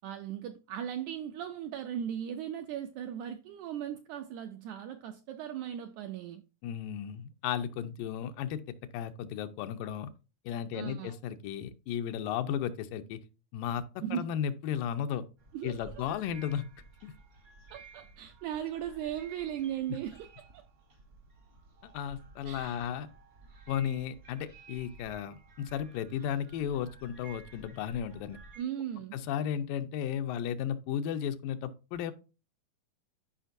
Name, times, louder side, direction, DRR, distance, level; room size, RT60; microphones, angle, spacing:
voice 1, 0.0-6.4 10.7-11.2 14.0-14.3 15.5-16.0 17.7-20.6 22.5-22.9 28.6-29.2, right 10 dB, 85° right, 1.6 m, -38 dB
voice 2, 6.6-8.6 8.9-10.1 10.5-13.2 13.5-13.8 14.1-15.3 15.6-16.7 17.0-17.1 21.8-23.1 23.7-28.4 29.1-32.1, left 9 dB, 90° left, 2.3 m, -34 dB
sound 1, 15.4-28.6, right 4 dB, 60° right, 0.7 m, -54 dB
12.5 x 5.1 x 2.6 m
omnidirectional pair, 3.8 m